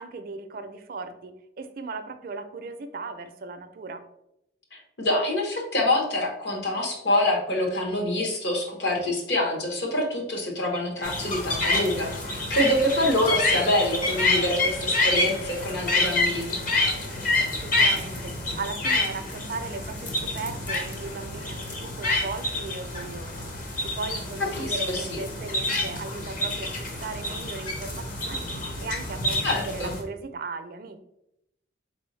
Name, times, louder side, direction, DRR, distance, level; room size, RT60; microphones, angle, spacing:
voice 1, 0.0-4.0 17.6-28.5 28.8-31.0, right 4 dB, 50° right, 8 dB, 0.4 m, -37 dB
voice 2, 4.7-16.6 24.4-25.2 29.4-29.9, left 1 dB, 65° left, 0 dB, 1.1 m, -26 dB
sound 1, 11.0-30.0, left 2 dB, 50° left, 0.8 m, -28 dB
4.1 x 3.4 x 3.1 m, 0.81 s
head